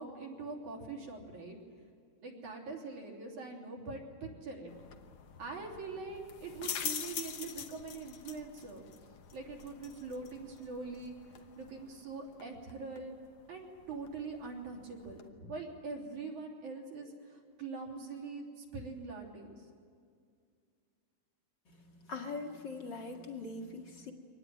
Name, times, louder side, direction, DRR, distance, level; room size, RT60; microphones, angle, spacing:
voice 1, 0.0-1.6 2.2-4.7 5.4-8.9 9.3-13.2 13.5-19.6, right 4 dB, 65° right, -1 dB, 4.7 m, -43 dB
sound 1, 4.7-15.3, left 8 dB, 60° left, 1.5 m, -46 dB
voice 2, 21.7-24.1, left 3 dB, 35° left, 2 dB, 2.4 m, -42 dB
24.5 x 19.0 x 9.2 m, 2.2 s
omnidirectional pair, 3.7 m